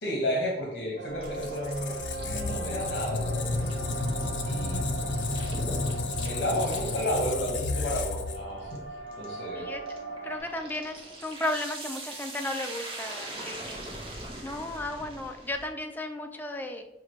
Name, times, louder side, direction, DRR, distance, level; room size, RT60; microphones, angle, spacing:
voice 1, 0.0-3.7 4.4-4.9 6.2-8.8 9.2-9.7, equal, 60° left, -2 dB, 0.9 m, -32 dB
sound 1, 1.0-10.4, right 3 dB, 70° right, 0.9 m, -39 dB
Squeak, 1.1-8.8, left 3 dB, 75° left, 0.4 m, -32 dB
sound 2, 1.2-15.7, right 1 dB, 30° right, 0.8 m, -42 dB
voice 2, 10.2-13.8 14.4-16.8, left 1 dB, 10° left, 5 dB, 0.3 m, -34 dB
5.8 x 2.4 x 3.0 m, 0.93 s
head